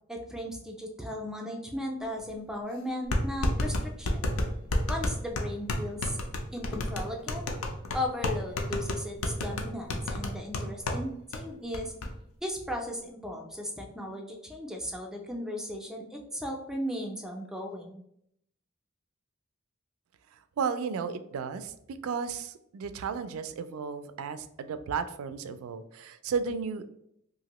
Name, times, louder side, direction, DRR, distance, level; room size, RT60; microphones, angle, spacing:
voice 1, 0.1-4.3 4.9-6.2 6.5-7.5 7.9-11.9 12.4-18.0, left 1 dB, 5° right, 1 dB, 0.4 m, -36 dB
sound 1, 2.2-2.3 3.1-11.0 11.3-11.4 11.7-12.1, left 1 dB, 80° left, 0.5 m, -30 dB
voice 2, 20.3-26.9, right 6 dB, 90° right, 11 dB, 0.3 m, -34 dB
2.9 x 2.5 x 2.9 m, 0.74 s
head